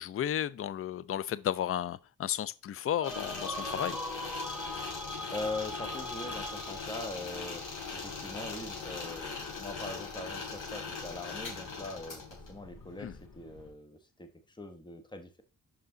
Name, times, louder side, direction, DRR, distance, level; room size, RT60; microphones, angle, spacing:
voice 1, 0.0-4.0 13.0-13.1, left 11 dB, 40° left, 0.4 m, -33 dB
sound 1, 3.0-13.7, left 4 dB, 65° left, 3.1 m, -41 dB
sound 2, 3.0-7.1, left 1 dB, 5° right, 0.6 m, -40 dB
voice 2, 5.3-7.6 7.9-15.4, left 2 dB, 15° left, 1.1 m, -42 dB
5.6 x 5.1 x 3.8 m
cardioid pair, 80°, 35 cm